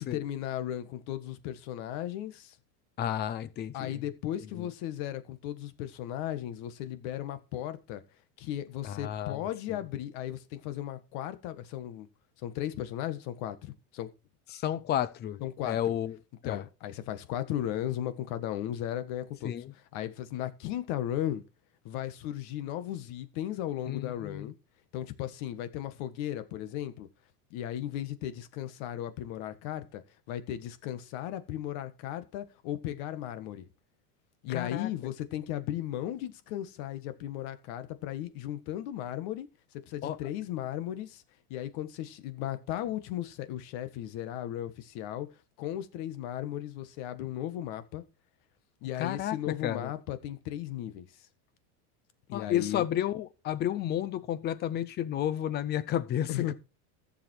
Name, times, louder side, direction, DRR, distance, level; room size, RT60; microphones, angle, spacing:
voice 1, 0.0-2.6 3.7-8.0 8.4-12.1 12.4-14.1 15.4-15.9 16.4-21.4 21.8-24.5 24.9-27.1 27.5-30.0 30.3-33.7 34.4-39.5 39.9-41.2 41.5-45.3 45.6-48.0 48.8-51.1 52.3-52.8 56.3-56.5, left 12 dB, 50° left, 1.6 m, -36 dB
voice 2, 3.0-4.0 4.5-4.7 8.8-9.4 9.7-9.8 14.5-16.2 16.4-16.6 19.4-19.7 23.9-24.5 34.5-34.9 40.0-40.2 49.0-49.9 52.3-56.5, left 11 dB, 25° left, 0.6 m, -32 dB
14.5 x 7.2 x 4.6 m
supercardioid pair, 160°, 44 cm